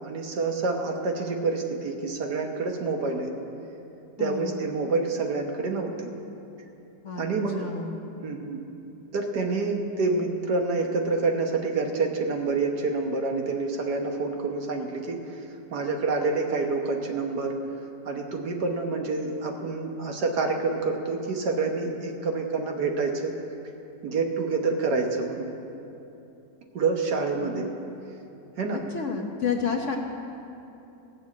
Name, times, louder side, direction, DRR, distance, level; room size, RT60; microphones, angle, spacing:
voice 1, 0.0-3.3 4.2-6.1 7.2-7.7 8.2-8.7 9.1-15.4 15.7-17.6 18.1-23.3 24.0-25.5 26.7-27.7 28.6-28.8, right 3 dB, 70° right, 3 dB, 1.7 m, -27 dB
voice 2, 4.2-4.6 7.0-7.3 7.6-8.0 27.4-27.7 28.7-30.0, left 6 dB, 50° left, 1 dB, 1.1 m, -30 dB
16.0 x 6.3 x 8.4 m, 2.8 s
omnidirectional pair, 1.9 m